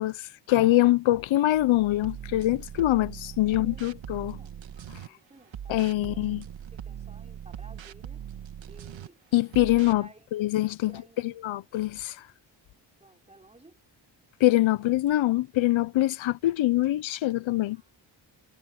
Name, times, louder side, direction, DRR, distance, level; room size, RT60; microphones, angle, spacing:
voice 1, 0.0-4.4 5.7-6.4 9.3-10.0 10.3-10.9 11.2-12.2 14.4-17.8, left 15 dB, 85° left, 0.7 m, -24 dB
sound 1, 2.0-5.1 5.5-9.1 9.5-10.0, right 9 dB, 75° right, 1.8 m, -41 dB
voice 2, 2.9-4.6 5.0-6.4 6.7-8.3 8.7-9.2 9.8-10.3 10.8-11.2 13.0-13.8 14.8-14.9 17.7-18.0, right 2 dB, 15° right, 4.6 m, -55 dB
wide cardioid pair, 120°, 45 cm